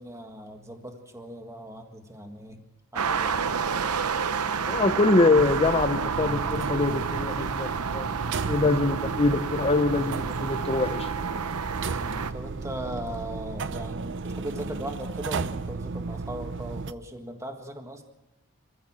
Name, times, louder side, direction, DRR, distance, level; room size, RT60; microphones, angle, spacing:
voice 1, 0.0-2.6 2.9-3.8 8.1-8.4 12.0-18.0, right 1 dB, 15° right, 1.7 m, -39 dB
sound 1, 3.0-12.3, right 6 dB, 90° right, 0.8 m, -30 dB
voice 2, 4.7-8.2 8.5-11.1, left 3 dB, 25° left, 0.9 m, -24 dB
sound 2, 5.3-16.9, right 4 dB, 55° right, 0.7 m, -34 dB
25.5 x 14.5 x 7.5 m
head